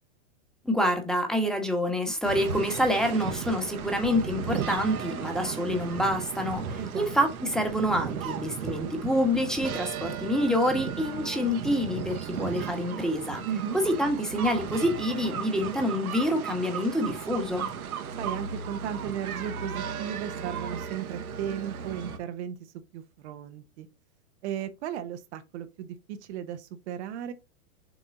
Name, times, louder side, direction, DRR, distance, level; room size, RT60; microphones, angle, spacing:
voice 1, 0.6-13.4 13.8-17.7, equal, ahead, 1.4 m, -27 dB
sound 1, 2.2-22.2, right 7 dB, 85° right, 1.7 m, -35 dB
voice 2, 6.8-7.1 13.5-13.8 18.2-23.9 24.4-27.3, right 9 dB, 50° right, 1.0 m, -35 dB
7.1 x 4.2 x 3.8 m
hypercardioid pair, 135°, 42 cm